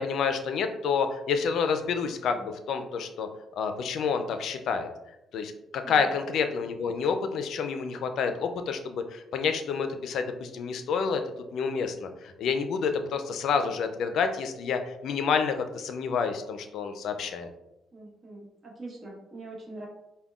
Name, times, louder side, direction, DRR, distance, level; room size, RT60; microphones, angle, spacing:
voice 1, 0.0-3.3 3.6-4.9 5.3-11.2 11.5-17.5, left 6 dB, 75° left, 7 dB, 0.4 m, -29 dB
voice 2, 17.9-19.9, right 2 dB, 45° right, -2 dB, 1.2 m, -42 dB
5.3 x 2.2 x 2.3 m, 0.90 s
cardioid pair, 90°, 0 cm